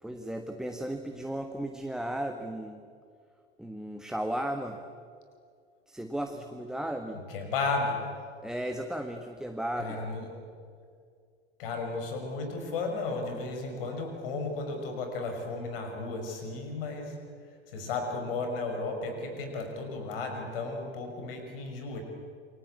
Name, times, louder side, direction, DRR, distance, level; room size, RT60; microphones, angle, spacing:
voice 1, 0.0-2.8 3.6-4.8 5.9-7.2 8.4-10.0, right 1 dB, ahead, 5 dB, 1.4 m, -35 dB
voice 2, 7.1-8.0 9.8-10.3 11.6-17.2 17.7-22.0, left 3 dB, 60° left, 4 dB, 6.1 m, -34 dB
28.5 x 23.5 x 8.6 m, 2.2 s
figure-of-eight pair, 80°, 33 cm